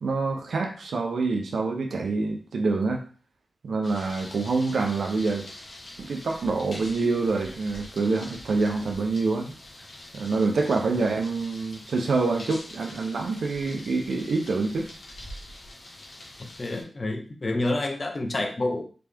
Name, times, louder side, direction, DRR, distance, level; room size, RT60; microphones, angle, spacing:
voice 1, 0.0-3.0 3.6-5.5 6.0-9.6 10.1-14.9, right 3 dB, 90° right, 3 dB, 0.7 m, -26 dB
sound 1, 3.8-16.8, left 1 dB, 65° left, 1.5 m, -44 dB
voice 2, 16.6-18.8, left 2 dB, 45° left, 3 dB, 0.9 m, -28 dB
3.9 x 3.5 x 3.5 m, 0.39 s
wide cardioid pair, 90°, 0 cm